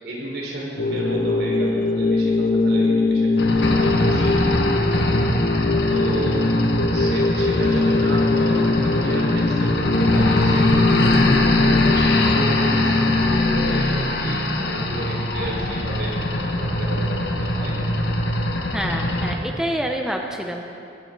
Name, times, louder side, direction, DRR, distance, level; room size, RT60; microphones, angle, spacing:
voice 1, 0.0-5.0 5.3-6.6 6.9-11.1 11.6-16.2 16.6-17.9, right 1 dB, 70° right, -3 dB, 4.8 m, -32 dB
sound 1, 0.8-13.8, left 3 dB, 50° left, 0.8 m, -21 dB
sound 2, 3.4-19.4, left 1 dB, 70° left, 1.6 m, -22 dB
voice 2, 18.7-20.7, equal, 5° right, 2 dB, 0.8 m, -27 dB
21.5 x 16.5 x 4.0 m, 2.6 s
head